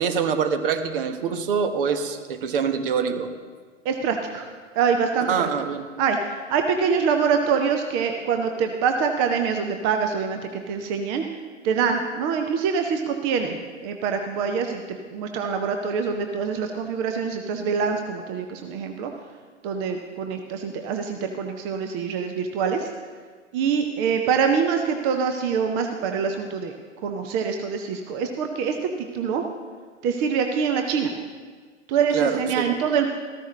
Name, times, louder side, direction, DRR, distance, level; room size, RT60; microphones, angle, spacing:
voice 1, 0.0-3.3 5.2-5.8 32.1-32.7, right 6 dB, 45° right, 8 dB, 1.2 m, -25 dB
voice 2, 3.8-4.5 4.8-5.5 6.0-11.2 11.6-13.6 13.8-19.1 19.6-22.9 23.5-26.7 27.0-29.4 30.0-31.1 31.9-33.1, right 6 dB, 15° right, 5 dB, 0.4 m, -25 dB
14.0 x 13.5 x 3.1 m, 1.6 s
figure-of-eight pair, 110°, 37 cm